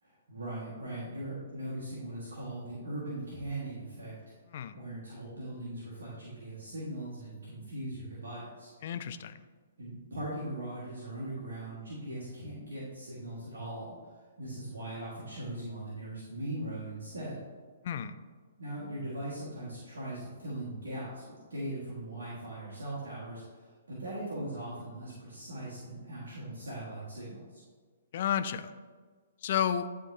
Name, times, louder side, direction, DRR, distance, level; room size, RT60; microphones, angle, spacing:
voice 1, 0.0-4.1 4.7-8.7 9.8-13.9 14.4-17.3 18.6-23.6 23.9-27.6, right 1 dB, 70° right, -7 dB, 1.6 m, -40 dB
voice 2, 8.8-9.4 17.8-18.2 28.1-28.7 29.4-29.9, left 9 dB, 50° left, 11 dB, 0.4 m, -31 dB
10.5 x 3.7 x 2.7 m, 1.5 s
figure-of-eight pair, 120°, 0 cm